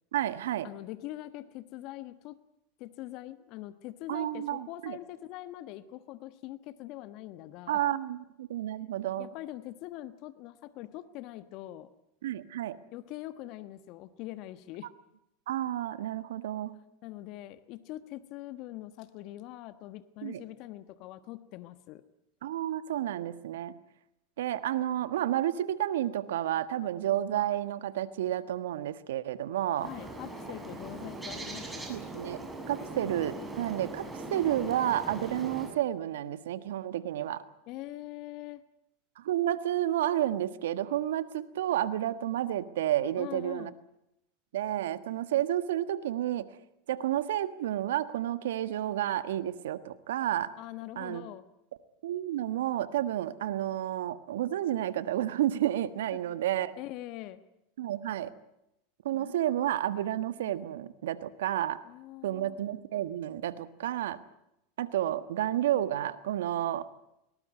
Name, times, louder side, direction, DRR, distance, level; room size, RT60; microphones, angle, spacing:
voice 1, 0.1-0.7 4.1-5.0 7.7-9.3 12.2-12.8 15.5-16.7 20.2-20.4 22.4-23.7 24.4-29.9 31.9-32.4 32.7-37.4 39.2-43.7 44.5-46.5 46.9-50.5 50.9-51.2 52.0-56.7 57.8-58.3 59.0-61.8 62.2-64.2 64.8-66.9, right 12 dB, 75° right, 14 dB, 1.4 m, -31 dB
voice 2, 0.6-2.4 2.8-7.8 9.2-11.9 12.9-14.9 17.0-22.0 29.8-32.0 37.7-38.6 43.2-43.8 50.6-51.4 56.1-56.2 56.8-57.4 59.1-59.4 61.8-62.6, left 15 dB, 55° left, 13 dB, 1.3 m, -43 dB
Bird, 29.8-35.7, right 2 dB, 15° right, 7.1 m, -40 dB
21.0 x 19.5 x 9.5 m, 0.84 s
hypercardioid pair, 90°, 0 cm